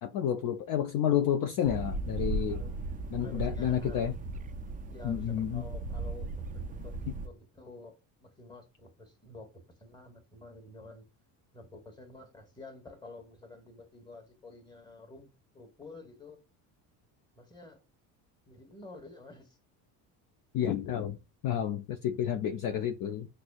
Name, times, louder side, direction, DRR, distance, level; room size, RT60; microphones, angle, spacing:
voice 1, 0.0-2.6 3.1-4.1 5.0-5.6 20.5-21.2 21.4-23.3, left 10 dB, 45° left, 0.5 m, -30 dB
sound 1, 1.6-7.3, right 2 dB, 20° right, 0.3 m, -37 dB
voice 2, 2.5-2.8 3.2-4.1 4.9-11.0 11.5-16.4 17.3-17.8 18.5-19.6 22.3-22.9, left 2 dB, 10° left, 1.2 m, -50 dB
6.0 x 2.1 x 2.3 m
supercardioid pair, 80°, 46 cm